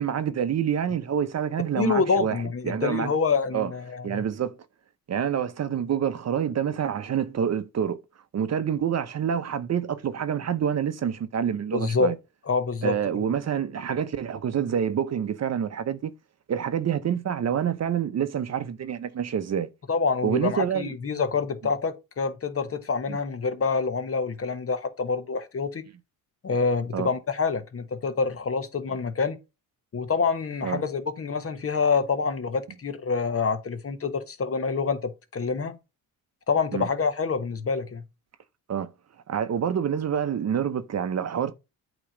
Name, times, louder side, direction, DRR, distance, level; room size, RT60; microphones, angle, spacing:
voice 1, 0.0-3.1 3.5-3.7 4.0-4.5 5.1-8.0 8.3-12.2 12.8-16.1 16.5-19.7 20.2-20.9 23.1-23.2 26.9-27.1 30.6-30.8 36.7-36.9 38.7-38.9 39.3-41.5, right 8 dB, 45° right, 0.7 m, -27 dB
voice 2, 1.8-4.2 11.7-12.1 12.5-13.0 19.9-25.8 26.4-29.4 29.9-35.8 36.5-38.0, left 5 dB, 35° left, 1.2 m, -26 dB
8.4 x 3.1 x 4.9 m
supercardioid pair, 75°, 38 cm